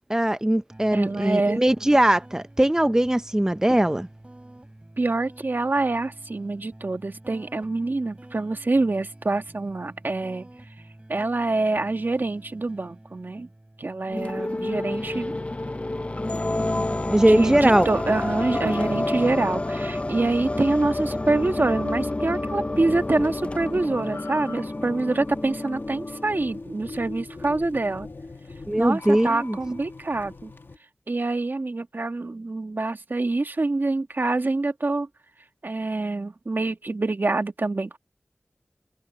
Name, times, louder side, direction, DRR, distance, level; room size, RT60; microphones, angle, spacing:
voice 1, 0.1-4.1 14.4-14.5 17.0-17.9 28.7-29.6, right 1 dB, 15° right, 0.7 m, -20 dB
sound 1, 0.7-15.8, right 1 dB, 30° right, 5.6 m, -48 dB
voice 2, 0.9-1.6 5.0-10.5 11.1-13.5 13.8-15.4 17.1-28.1 28.8-30.5 31.1-35.1 35.6-38.0, right 2 dB, 60° right, 1.6 m, -26 dB
sound 2, 14.1-27.0, left 2 dB, 35° left, 0.7 m, -29 dB
sound 3, 22.7-30.8, left 3 dB, 70° left, 1.7 m, -41 dB
open air
wide cardioid pair, 55°, 4 cm